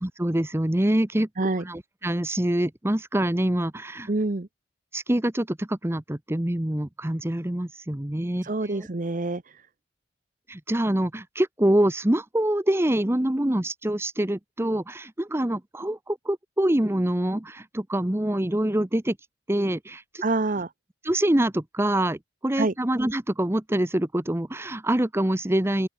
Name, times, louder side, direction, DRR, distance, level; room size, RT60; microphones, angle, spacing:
voice 1, 0.0-1.3 1.6-4.1 4.9-8.9 10.5-19.2 19.5-20.2 21.0-25.9, right 1 dB, 15° right, 0.8 m, -25 dB
voice 2, 4.1-4.5 8.4-9.6 20.2-20.7 22.6-22.7, right 2 dB, 45° right, 0.9 m, -26 dB
open air
head